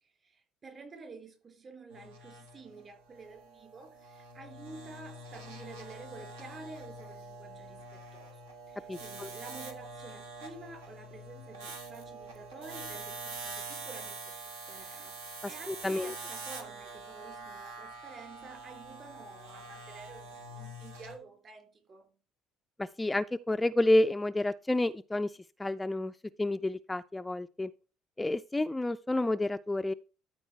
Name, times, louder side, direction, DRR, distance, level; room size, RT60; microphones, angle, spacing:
voice 1, 0.0-22.1, right 3 dB, 40° right, 4.0 m, -50 dB
sound 1, 1.9-21.2, right 2 dB, 75° right, 1.4 m, -45 dB
voice 2, 8.9-9.3 15.7-16.1 22.8-25.3 25.6-26.1 26.4-27.7 28.2-29.9, left 1 dB, 15° left, 0.3 m, -29 dB
13.0 x 4.7 x 4.5 m
figure-of-eight pair, 60°, 0 cm